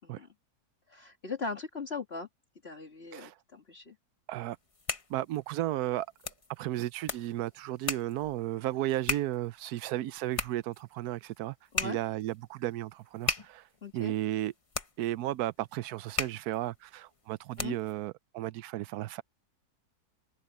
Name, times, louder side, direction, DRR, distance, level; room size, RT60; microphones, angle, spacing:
voice 1, 0.9-2.3 2.6-4.0 11.7-12.0 13.8-14.1 17.6-17.8, left 4 dB, 40° left, 2.2 m, -39 dB
sound 1, 4.5-18.0, left 3 dB, 25° left, 1.0 m, -39 dB
voice 2, 5.1-6.1 6.6-11.5 11.8-13.7 13.9-14.5 15.0-19.2, right 14 dB, 75° right, 1.1 m, -34 dB
open air
omnidirectional pair, 1.7 m